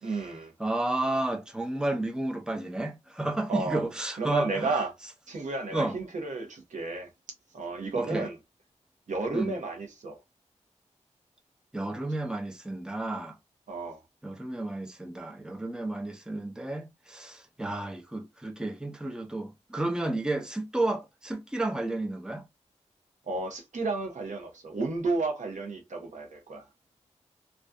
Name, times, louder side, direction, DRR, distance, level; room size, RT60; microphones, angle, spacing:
voice 1, 0.0-0.5 3.5-3.8 4.2-4.9 5.3-7.1 7.5-8.4 9.1-10.2 13.7-14.0 23.3-26.7, right 3 dB, 80° right, 0.8 m, -32 dB
voice 2, 0.6-4.7 5.7-6.0 7.9-8.3 9.3-9.5 11.7-13.4 14.2-22.4, right 2 dB, 5° right, 0.6 m, -32 dB
2.5 x 2.3 x 2.2 m
cardioid pair, 50°, 12 cm